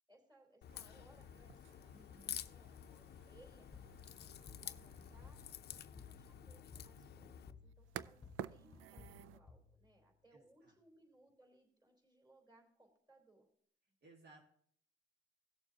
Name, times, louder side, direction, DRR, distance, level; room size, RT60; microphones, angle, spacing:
voice 1, 0.1-3.7 4.2-5.4 5.7-13.5, right 2 dB, 20° right, 2 dB, 3.4 m, -67 dB
Crack, 0.6-7.5, left 10 dB, 55° left, 0.5 m, -51 dB
sound 1, 0.7-9.4, right 12 dB, 85° right, 0.4 m, -54 dB
voice 2, 1.9-2.4 10.3-10.7 14.0-14.4, right 2 dB, 55° right, -1 dB, 1.8 m, -62 dB
sound 2, 3.7-10.3, left 4 dB, 20° left, 0.9 m, -59 dB
17.0 x 6.9 x 2.8 m, 0.62 s
cardioid pair, 90°, 20 cm